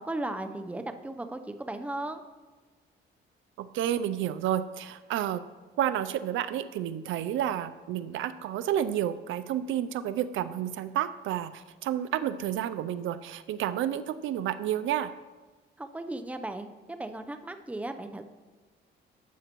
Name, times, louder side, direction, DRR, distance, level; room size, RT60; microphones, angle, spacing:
voice 1, 0.0-2.2 15.8-18.2, right 2 dB, 5° right, 7 dB, 0.6 m, -36 dB
voice 2, 3.6-5.4 5.8-15.1, right 11 dB, 80° right, 13 dB, 0.4 m, -30 dB
12.0 x 8.2 x 3.0 m, 1.3 s
cardioid pair, 90°, 20 cm